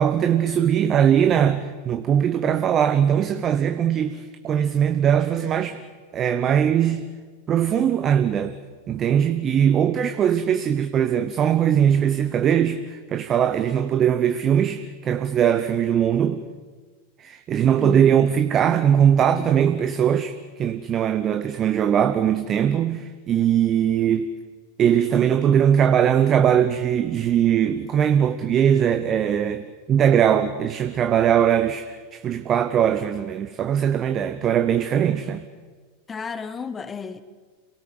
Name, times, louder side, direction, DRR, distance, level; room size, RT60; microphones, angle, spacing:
voice 1, 0.0-5.8 6.1-7.1 7.5-8.6 8.9-16.4 17.2-24.3 24.8-35.5, right 9 dB, 30° right, 0.9 m, -20 dB
voice 2, 36.1-37.2, left 5 dB, 20° left, 1.3 m, -32 dB
27.5 x 18.0 x 7.9 m
figure-of-eight pair, 90°, 0 cm